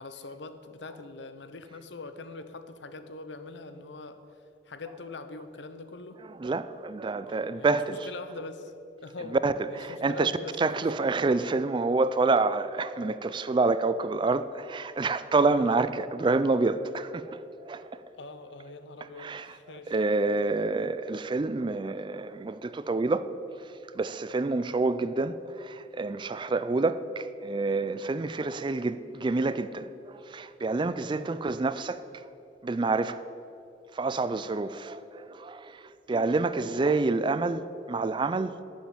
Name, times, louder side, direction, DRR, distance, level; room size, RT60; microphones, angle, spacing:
voice 1, 0.0-4.2 4.7-6.2 7.3-7.8 8.1-8.7 9.0-9.4 9.7-11.1 15.5-15.8 18.1-19.9 31.1-31.4, left 3 dB, 75° left, 0.8 m, -43 dB
voice 2, 6.3-8.1 9.2-10.3 10.6-18.0 19.2-19.5 19.9-23.3 23.6-32.0 32.6-33.2 33.9-38.5, right 3 dB, 25° right, 0.4 m, -28 dB
11.5 x 7.3 x 8.8 m
head